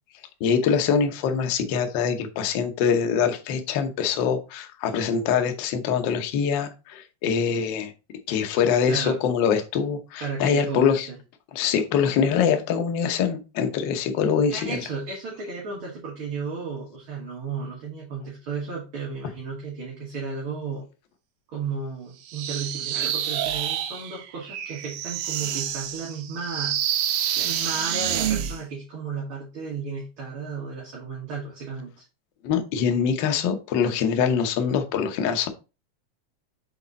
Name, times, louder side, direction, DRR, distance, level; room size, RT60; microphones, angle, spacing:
voice 1, 0.4-7.9 8.3-11.1 11.5-14.8 32.4-35.5, left 7 dB, 85° left, 6 dB, 1.0 m, -24 dB
voice 2, 8.9-9.2 10.2-11.2 14.5-20.9 21.5-26.8 27.4-32.0, right 5 dB, 50° right, -4 dB, 2.2 m, -34 dB
sound 1, 22.3-28.6, right 10 dB, 90° right, 2.2 m, -28 dB
6.4 x 4.1 x 4.0 m, 0.31 s
omnidirectional pair, 3.4 m